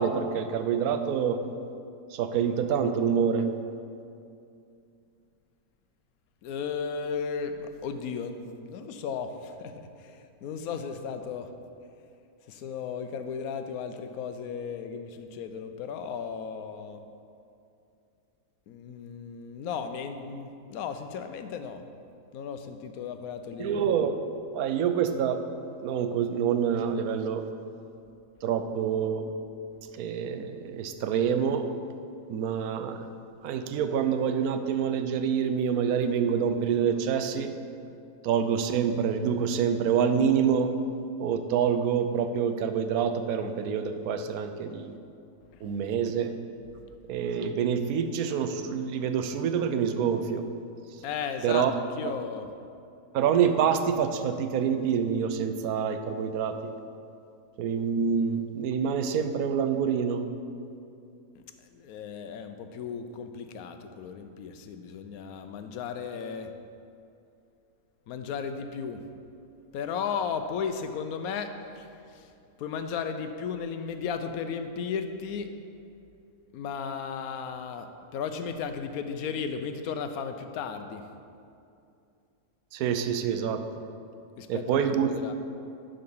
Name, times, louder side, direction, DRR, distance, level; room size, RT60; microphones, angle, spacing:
voice 1, 0.0-1.4 2.1-3.5 23.6-24.2 24.5-27.4 28.4-29.3 29.9-31.7 32.3-33.1 33.4-37.5 38.2-40.7 41.2-45.0 45.6-46.3 47.1-50.5 51.4-51.7 53.1-56.7 57.6-60.2 82.7-83.6 84.5-85.1, right 7 dB, 85° right, 8 dB, 1.1 m, -26 dB
voice 2, 6.4-11.5 12.5-17.0 18.7-21.8 22.3-23.8 51.0-51.7 52.0-52.5 61.7-66.5 68.1-69.0 69.7-72.3 72.6-75.5 76.5-77.9 78.1-81.0 84.4-84.6 85.0-85.3, left 6 dB, 90° left, 8 dB, 1.1 m, -35 dB
11.0 x 3.9 x 5.4 m, 2.5 s
omnidirectional pair, 1.5 m